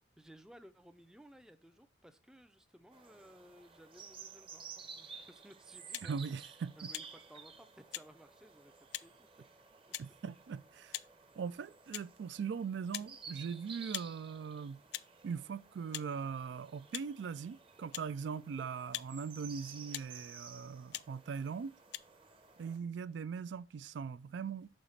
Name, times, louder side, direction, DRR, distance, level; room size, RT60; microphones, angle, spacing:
voice 1, 0.2-6.2 6.8-8.7 9.0-9.3 10.0-10.1, equal, 5° right, 0.4 m, -58 dB
sound 1, 2.9-22.8, right 5 dB, 30° right, 0.8 m, -54 dB
sound 2, 5.9-6.1 6.9-7.1 7.9-8.1 8.9-9.1 9.9-10.1 10.9-11.1 11.9-12.1 12.9-13.1 13.9-14.1 14.9-15.1 15.9-16.1 16.9-17.1 17.9-18.1 18.9-19.1 19.9-20.1 20.9-21.1 21.9-22.0, left 14 dB, 60° left, 0.3 m, -42 dB
voice 2, 6.0-6.9 10.0-11.0 11.4-14.8 15.2-21.7 22.6-24.7, right 6 dB, 70° right, 0.3 m, -40 dB
6.4 x 4.0 x 5.6 m
head